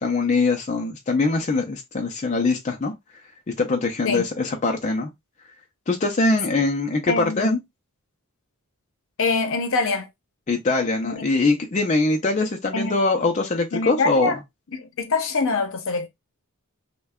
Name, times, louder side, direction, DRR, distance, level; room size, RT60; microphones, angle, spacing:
voice 1, 0.0-2.9 3.6-5.1 5.9-7.6 10.5-14.4, left 3 dB, 35° left, 0.5 m, -22 dB
voice 2, 7.1-7.6 9.2-10.1 11.0-11.3 12.7-13.0 13.7-14.4 14.7-16.1, left 3 dB, 65° left, 0.8 m, -24 dB
3.2 x 2.2 x 3.5 m
head